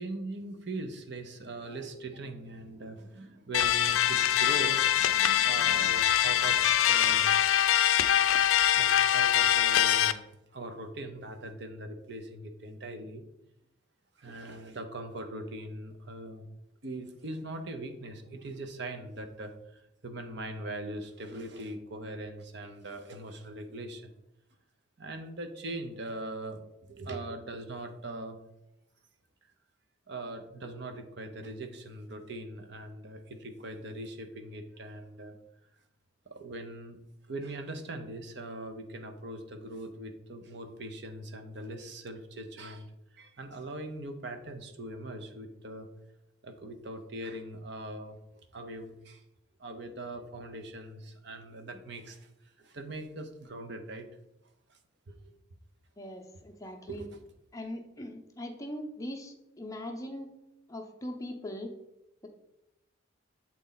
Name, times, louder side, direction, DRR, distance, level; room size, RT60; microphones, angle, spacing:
voice 1, 0.0-7.3 8.7-10.2 10.5-13.2 14.2-16.5 16.8-24.1 25.0-26.6 26.9-28.4 30.1-35.4 36.3-37.0 37.3-42.9 43.1-45.9 46.4-48.2 48.5-49.2 49.6-52.3 52.6-54.1 54.7-54.8 55.1-55.2 56.9-57.2, right 2 dB, 55° right, 7 dB, 0.7 m, -41 dB
sound 1, 3.5-10.1, left 11 dB, 75° left, 0.4 m, -24 dB
voice 2, 56.0-57.1 57.5-60.3 60.7-61.7, left 1 dB, 15° left, 1 dB, 0.7 m, -40 dB
7.5 x 4.1 x 3.9 m, 0.88 s
head